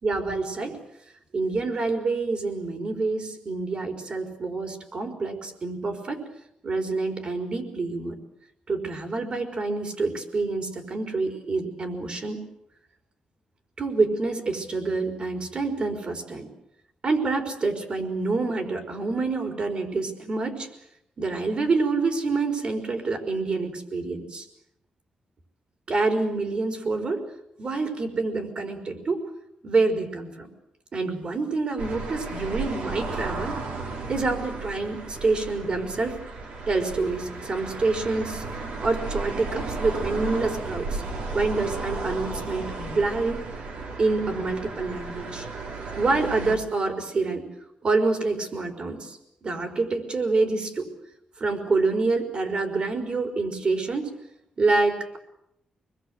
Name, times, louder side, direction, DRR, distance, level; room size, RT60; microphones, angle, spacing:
voice 1, 0.0-0.8 1.3-6.2 6.6-8.2 8.7-12.5 13.8-16.5 17.0-20.7 21.2-24.5 25.9-27.2 27.6-29.2 29.6-30.5 30.9-33.6 34.1-36.2 36.7-38.4 38.8-41.0 41.3-43.4 44.0-45.5 46.0-47.5 47.8-50.9 51.4-54.1 54.6-55.2, right 3 dB, 45° right, 5 dB, 4.7 m, -27 dB
sound 1, 31.8-46.6, right 3 dB, 80° right, 4.3 m, -34 dB
26.0 x 21.0 x 7.9 m, 0.80 s
cardioid pair, 115°, 2 cm